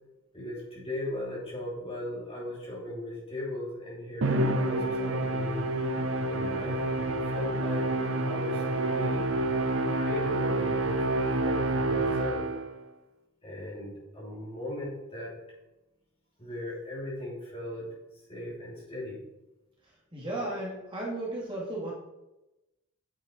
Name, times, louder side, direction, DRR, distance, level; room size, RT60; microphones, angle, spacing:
voice 1, 0.3-5.6 6.3-9.2 9.9-12.5 13.4-15.4 16.4-17.9 18.3-19.2, left 1 dB, 25° left, -5 dB, 2.9 m, -38 dB
Musical instrument, 4.2-12.8, right 2 dB, 65° right, 0.8 m, -28 dB
voice 2, 20.1-21.9, right 1 dB, 25° right, -5 dB, 2.7 m, -34 dB
8.7 x 6.3 x 4.5 m, 0.96 s
head